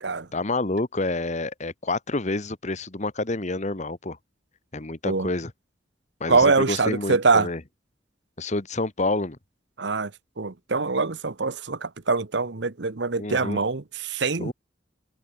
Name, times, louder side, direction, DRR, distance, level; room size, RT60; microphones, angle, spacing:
voice 1, 0.3-4.2 4.7-5.5 6.2-7.6 8.4-9.4 13.2-13.6 14.4-14.5, left 2 dB, 40° left, 1.5 m, -28 dB
voice 2, 6.3-7.5 9.8-10.1 10.4-14.5, right 4 dB, 70° right, 1.1 m, -24 dB
head